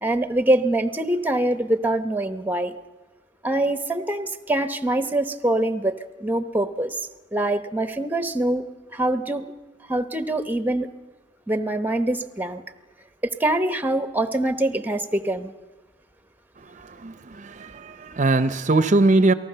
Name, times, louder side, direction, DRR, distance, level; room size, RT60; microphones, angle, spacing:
voice 1, 0.0-2.7 3.4-7.0 7.3-8.6 8.9-9.4 9.9-10.9 11.5-12.6 13.2-15.5, right 1 dB, 10° right, 10 dB, 0.9 m, -24 dB
voice 2, 17.0-19.3, right 2 dB, 40° right, 13 dB, 0.7 m, -20 dB
28.0 x 19.0 x 6.8 m, 1.2 s
head